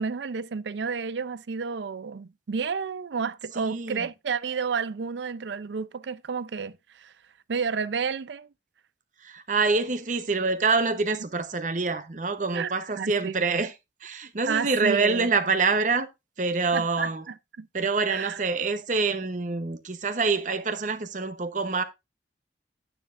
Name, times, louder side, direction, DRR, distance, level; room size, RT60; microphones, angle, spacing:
voice 1, 0.0-7.1 7.5-8.5 12.5-13.6 14.5-15.3 16.7-17.7 18.1-18.4, right 5 dB, 80° right, 0.5 m, -31 dB
voice 2, 3.6-4.0 9.2-13.7 14.0-16.1 16.4-17.2 17.7-21.8, right 4 dB, 45° right, 0.8 m, -26 dB
10.0 x 9.0 x 2.5 m
head